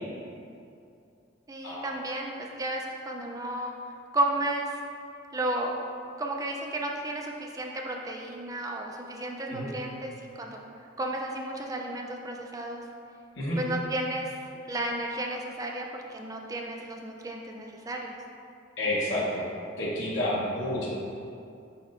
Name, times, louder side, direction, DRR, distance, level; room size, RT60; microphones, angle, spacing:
voice 1, 1.5-3.7 4.1-4.8 5.3-5.7 6.2-10.6 11.0-12.8 13.6-14.4 14.7-18.2, right 1 dB, 20° right, 0 dB, 0.4 m, -33 dB
voice 2, 18.8-19.4 19.8-20.9, left 1 dB, 80° left, -6 dB, 0.9 m, -29 dB
5.0 x 4.3 x 2.5 m, 2.5 s
head